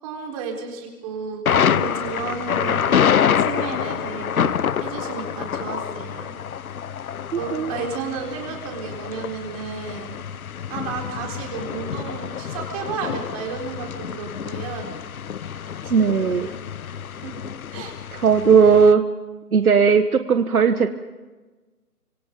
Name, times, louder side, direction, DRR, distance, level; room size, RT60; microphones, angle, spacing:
voice 1, 0.0-6.4 7.4-10.2 10.7-14.9 15.8-16.6 17.1-17.5 17.7-17.9, right 5 dB, 20° right, 1 dB, 4.0 m, -33 dB
Thunder, 1.5-18.9, left 8 dB, 65° left, 0.8 m, -26 dB
voice 2, 7.3-7.7 15.9-16.5 18.1-19.0 19.5-20.9, right 6 dB, 65° right, 9 dB, 1.4 m, -17 dB
29.0 x 26.0 x 5.2 m, 1.3 s
figure-of-eight pair, 155°, 47 cm